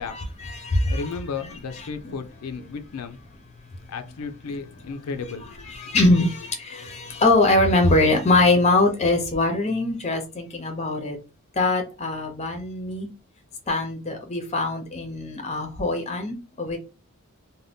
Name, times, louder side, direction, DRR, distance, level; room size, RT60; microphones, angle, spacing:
voice 1, 0.1-1.2 1.8-2.1 5.6-11.2 11.6-13.1 13.7-16.8, left 2 dB, 30° left, 0.6 m, -22 dB
voice 2, 0.9-3.2 3.9-5.7, left 5 dB, 85° left, 0.4 m, -34 dB
2.6 x 2.1 x 3.4 m
head